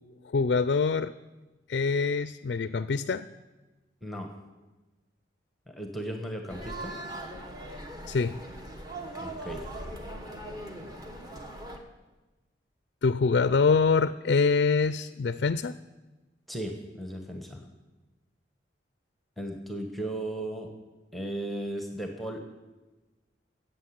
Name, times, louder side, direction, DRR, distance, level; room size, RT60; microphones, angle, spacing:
voice 1, 0.3-1.1 1.7-3.3 8.1-8.4 13.0-15.8, left 4 dB, 60° left, 14 dB, 0.4 m, -25 dB
voice 2, 5.7-7.0 9.2-9.7 16.5-17.6 19.4-20.7 21.1-22.5, right 1 dB, ahead, 3 dB, 1.1 m, -36 dB
sound 1, 6.5-11.8, right 1 dB, 20° right, 1.3 m, -40 dB
14.0 x 7.9 x 8.6 m, 1.2 s
head